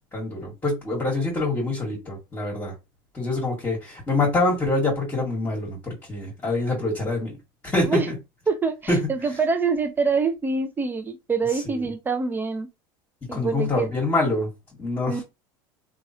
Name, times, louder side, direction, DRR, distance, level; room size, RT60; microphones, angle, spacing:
voice 1, 0.1-2.7 3.1-7.4 7.6-8.1 8.9-9.0 11.6-11.9 13.3-14.5 14.8-15.2, left 2 dB, 20° left, 1.7 m, -25 dB
voice 2, 8.5-12.7 13.3-13.9 15.1-15.2, right 4 dB, 15° right, 0.6 m, -25 dB
3.0 x 2.5 x 2.7 m
supercardioid pair, 105°, 12 cm